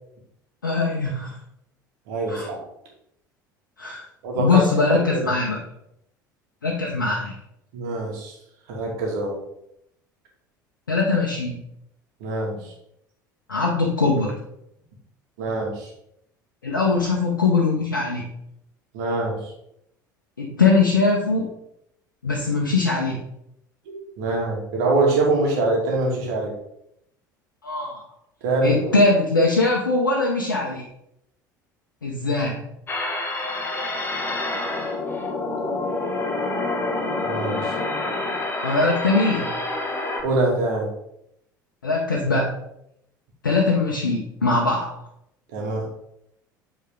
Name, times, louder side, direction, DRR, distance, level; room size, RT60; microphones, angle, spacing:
voice 1, 0.6-1.3 2.3-2.5 3.8-4.0 4.4-5.6 6.6-7.4 10.9-11.6 13.5-14.3 16.6-18.2 20.4-21.4 22.2-23.2 27.6-28.0 28.6-30.8 32.0-32.6 38.6-39.4 41.8-42.6 43.4-45.0, left 3 dB, 80° left, -2 dB, 0.9 m, -21 dB
voice 2, 2.1-2.6 4.2-4.6 4.9-5.3 7.7-8.4 8.7-9.4 12.2-12.7 15.4-15.9 18.9-19.5 23.9-26.5 28.4-28.9 37.2-37.8 40.2-40.9 45.5-45.9, right 2 dB, 60° right, -1 dB, 2.3 m, -24 dB
sound 1, 32.9-40.2, left 2 dB, 20° left, 1.5 m, -27 dB
8.3 x 4.4 x 3.7 m, 0.77 s
figure-of-eight pair, 65°, 11 cm